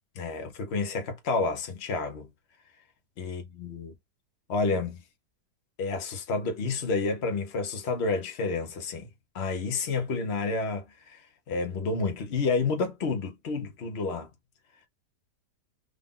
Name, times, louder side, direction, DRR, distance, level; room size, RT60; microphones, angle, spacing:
voice 1, 0.1-2.3 3.2-3.9 4.5-5.0 5.8-9.1 9.3-11.2 11.5-14.3, left 4 dB, 45° left, 1.0 m, -30 dB
3.5 x 2.6 x 3.7 m
omnidirectional pair, 1.8 m